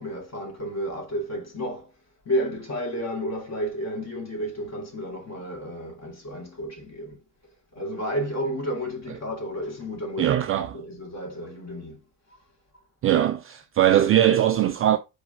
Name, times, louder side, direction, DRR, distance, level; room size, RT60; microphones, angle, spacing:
voice 1, 0.0-1.9 2.3-7.2 7.7-12.0, equal, 30° left, 2.5 m, -32 dB
voice 2, 10.2-10.8 13.0-15.0, right 11 dB, 30° right, 0.4 m, -21 dB
4.8 x 4.3 x 5.1 m
figure-of-eight pair, 55°, 49 cm